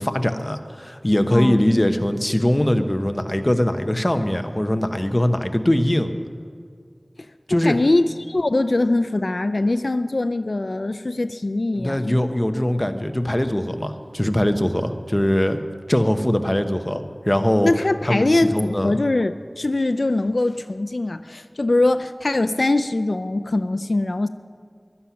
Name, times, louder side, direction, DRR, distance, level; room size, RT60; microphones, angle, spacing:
voice 1, 0.0-6.1 7.5-7.8 11.8-15.6 15.9-17.7 18.1-18.9, left 1 dB, 25° left, 7 dB, 0.9 m, -21 dB
voice 2, 1.3-1.6 7.5-12.2 17.6-24.3, left 2 dB, 90° left, 10 dB, 0.4 m, -22 dB
15.5 x 11.5 x 5.8 m, 2.1 s
wide cardioid pair, 45°, 0 cm